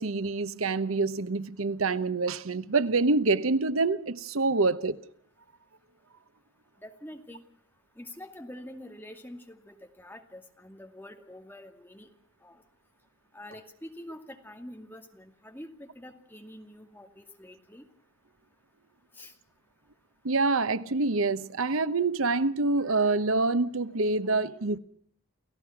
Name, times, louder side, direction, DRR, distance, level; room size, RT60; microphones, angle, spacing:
voice 1, 0.0-5.0 20.2-24.8, right 3 dB, 90° right, 1.0 m, -26 dB
voice 2, 6.8-7.4 8.0-12.1 12.4-12.6 13.3-17.9 19.1-19.4, left 1 dB, 10° left, 2.3 m, -46 dB
29.0 x 16.5 x 5.9 m
head